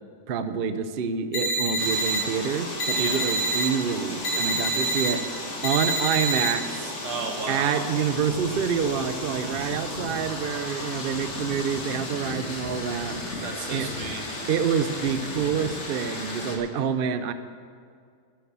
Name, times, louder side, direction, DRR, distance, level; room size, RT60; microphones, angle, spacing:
voice 1, 0.3-7.0 7.5-13.2 13.7-13.9 14.5-17.3, right 7 dB, 60° right, 10 dB, 0.6 m, -27 dB
sound 1, 1.3-2.2 2.8-3.7 4.2-5.1 5.6-6.5, right 2 dB, 70° left, 2.0 m, -26 dB
sound 2, 1.8-16.6, left 2 dB, 45° left, 1.9 m, -35 dB
voice 2, 2.9-3.3 7.0-7.9 13.4-14.5, right 4 dB, 85° right, 3 dB, 2.1 m, -34 dB
11.0 x 10.5 x 7.4 m, 2.2 s
omnidirectional pair, 1.7 m